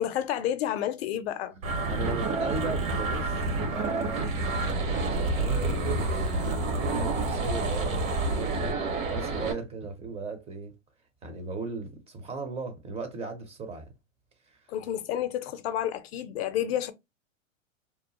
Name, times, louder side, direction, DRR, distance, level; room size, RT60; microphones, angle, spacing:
voice 1, 0.0-1.5 14.7-16.9, left 11 dB, 50° left, 0.5 m, -30 dB
sound 1, 1.6-9.5, right 2 dB, 80° right, 1.4 m, -28 dB
voice 2, 1.7-3.4 3.7-10.8 11.2-13.9 14.5-14.7, right 3 dB, 15° right, 0.5 m, -37 dB
2.8 x 2.2 x 2.8 m
hypercardioid pair, 110°, 40 cm